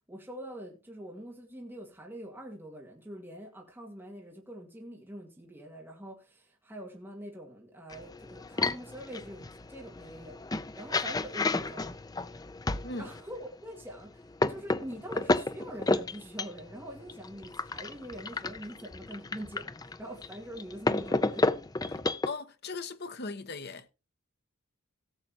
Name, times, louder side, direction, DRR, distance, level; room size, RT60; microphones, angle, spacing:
voice 1, 0.1-10.4 10.8-11.9 12.9-21.5 21.8-22.1, equal, 10° right, 2.1 m, -44 dB
sound 1, 7.9-13.2 13.8-22.3, left 3 dB, 20° left, 0.5 m, -32 dB
voice 2, 22.3-23.8, left 3 dB, 50° left, 1.0 m, -38 dB
17.5 x 7.5 x 2.9 m
head